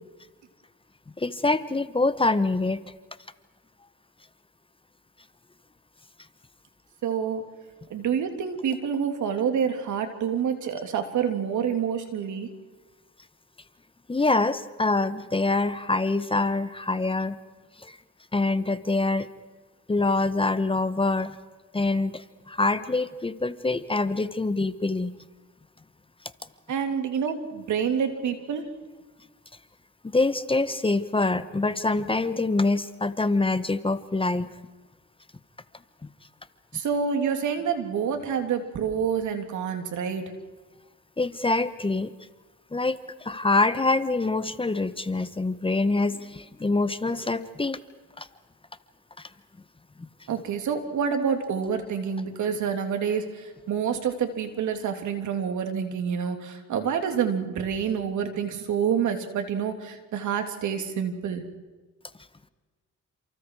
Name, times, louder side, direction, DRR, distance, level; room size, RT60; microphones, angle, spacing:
voice 1, 1.2-2.8 14.1-17.4 17.8-18.0 18.3-19.3 19.9-21.3 21.7-25.1 30.0-34.5 41.2-42.1 42.7-47.8 48.2-48.3, left 3 dB, 20° left, 13 dB, 1.1 m, -25 dB
voice 2, 7.0-7.4 7.9-12.5 26.7-28.6 36.7-40.2 50.3-61.4, right 7 dB, 75° right, 6 dB, 3.2 m, -27 dB
29.5 x 27.5 x 4.9 m, 1.3 s
cardioid pair, 90°, 30 cm